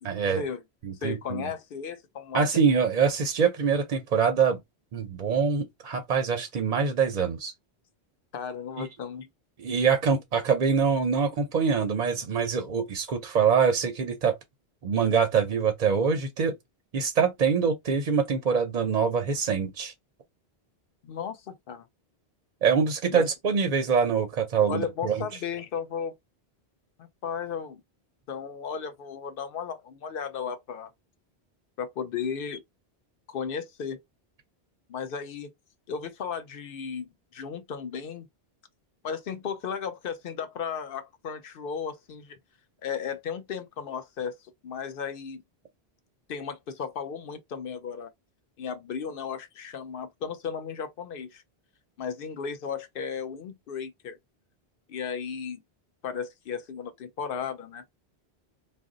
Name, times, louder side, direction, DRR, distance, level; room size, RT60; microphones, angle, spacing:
voice 1, 0.0-0.4 0.8-1.5 2.3-4.6 4.9-7.5 8.8-8.9 9.6-14.4 14.8-16.5 16.9-19.9 22.6-25.3, right 6 dB, 50° right, 0.5 m, -24 dB
voice 2, 1.0-2.5 8.3-9.3 21.0-21.9 23.1-23.3 24.7-26.1 27.0-27.8 28.3-30.9 31.8-32.6 33.3-34.0 34.9-35.5 35.9-38.3 39.0-42.4 42.8-45.4 46.3-48.1 48.6-51.4 52.0-54.2 54.9-55.6 56.0-57.8, left 6 dB, 60° left, 0.8 m, -35 dB
2.5 x 2.1 x 3.7 m
omnidirectional pair, 1.1 m